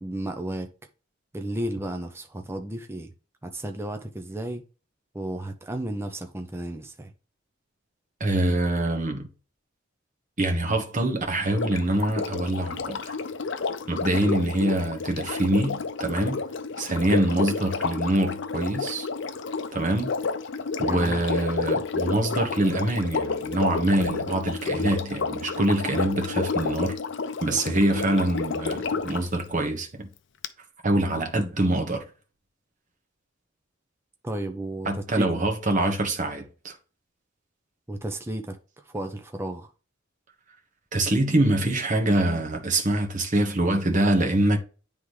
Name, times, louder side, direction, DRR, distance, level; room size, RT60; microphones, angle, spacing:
voice 1, 0.0-0.7 1.3-3.1 3.4-4.6 5.1-7.1 20.8-21.3 34.2-35.3 37.9-38.6 38.9-39.7, right 1 dB, 10° right, 0.6 m, -33 dB
voice 2, 8.2-9.3 10.4-13.2 13.9-16.4 16.8-19.1 19.7-20.1 20.8-27.0 27.4-30.1 30.8-32.0 34.8-36.7 40.9-44.6, right 1 dB, 40° right, 1.2 m, -25 dB
Sink (filling or washing), 11.5-29.3 30.4-30.5, left 4 dB, 60° left, 0.5 m, -30 dB
9.8 x 3.5 x 3.1 m
head